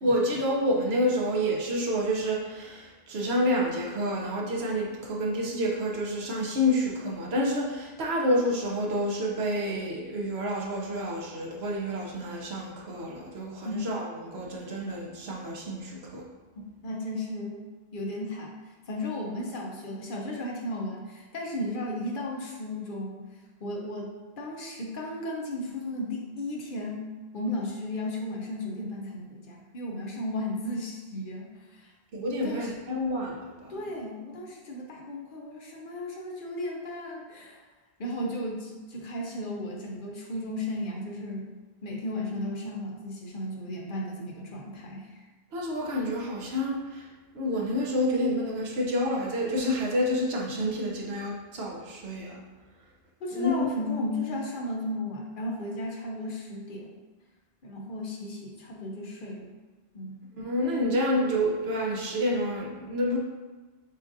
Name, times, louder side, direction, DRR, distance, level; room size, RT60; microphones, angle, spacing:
voice 1, 0.0-16.2 32.1-33.7 45.5-47.1 47.3-52.4 53.3-53.7 60.4-63.2, equal, 80° right, -1 dB, 1.0 m, -28 dB
voice 2, 16.8-17.6 17.9-31.9 32.4-32.7 33.7-37.6 38.0-41.5 41.8-45.2 53.2-56.9 57.6-59.6 59.9-60.2, left 1 dB, 60° left, -1 dB, 0.8 m, -35 dB
6.6 x 2.5 x 2.6 m, 1.3 s
omnidirectional pair, 1.0 m